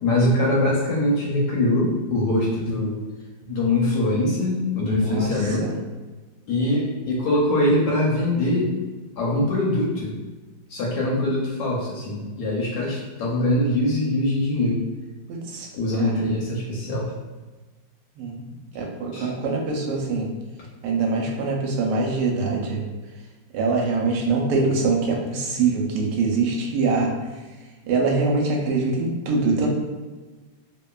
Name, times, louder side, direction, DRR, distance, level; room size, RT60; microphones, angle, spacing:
voice 1, 0.0-3.0 3.4-5.7 6.5-8.7 9.2-10.2 10.7-14.8 15.7-17.1 19.1-19.3, left 1 dB, 70° left, -3 dB, 1.0 m, -23 dB
voice 2, 4.8-5.8 15.3-15.7 16.0-16.3 18.2-20.3 20.8-22.8 23.5-27.1 27.9-29.7, right 3 dB, 75° right, 0 dB, 1.1 m, -24 dB
2.9 x 2.2 x 2.2 m, 1.3 s
omnidirectional pair, 1.9 m